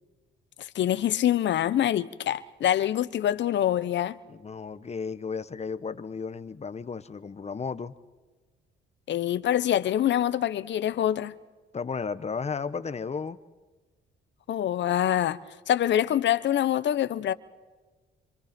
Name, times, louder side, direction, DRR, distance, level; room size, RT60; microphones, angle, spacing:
voice 1, 0.6-4.2 9.1-11.3 14.5-15.4 15.7-17.3, left 11 dB, 65° left, 1.0 m, -25 dB
voice 2, 4.3-7.9 11.7-13.4, left 5 dB, 35° left, 1.2 m, -34 dB
27.0 x 26.5 x 4.5 m
cardioid pair, 90°, 20 cm